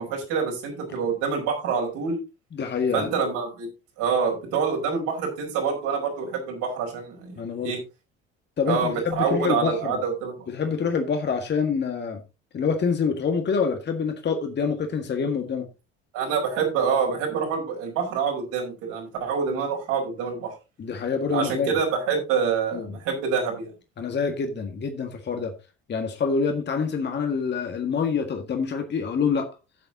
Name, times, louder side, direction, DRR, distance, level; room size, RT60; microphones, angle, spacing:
voice 1, 0.0-2.2 2.9-3.7 4.0-7.8 8.6-10.5 16.1-20.5 21.3-23.7, right 6 dB, 60° right, 4.9 m, -26 dB
voice 2, 2.5-3.1 7.4-7.7 8.6-10.0 10.5-12.2 12.5-15.7 20.8-21.7 22.7-23.0 24.0-25.5 25.9-29.5, left 5 dB, 30° left, 1.8 m, -26 dB
15.0 x 7.7 x 2.8 m
figure-of-eight pair, 60°, 34 cm